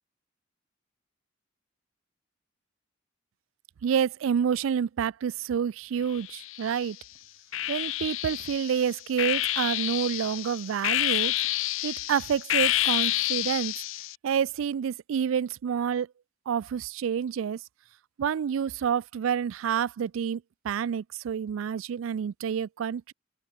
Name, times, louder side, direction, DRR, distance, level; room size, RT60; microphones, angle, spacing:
voice 1, 3.8-7.0 7.7-11.3 11.8-13.7 14.2-16.1 16.5-17.6 18.2-23.1, right 7 dB, 75° right, 0.3 m, -28 dB
sound 1, 6.1-6.9 7.5-14.2, left 15 dB, 75° left, 0.6 m, -29 dB
open air
head